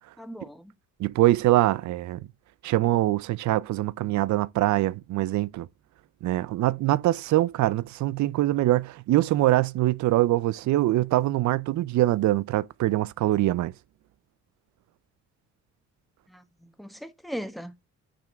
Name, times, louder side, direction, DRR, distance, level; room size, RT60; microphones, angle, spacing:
voice 1, 0.2-0.7 16.3-17.9, equal, ahead, 1.3 m, -39 dB
voice 2, 1.0-2.3 2.6-5.7 6.2-13.7, right 16 dB, 70° right, 0.5 m, -23 dB
9.0 x 3.6 x 4.4 m
cardioid pair, 90°, 30 cm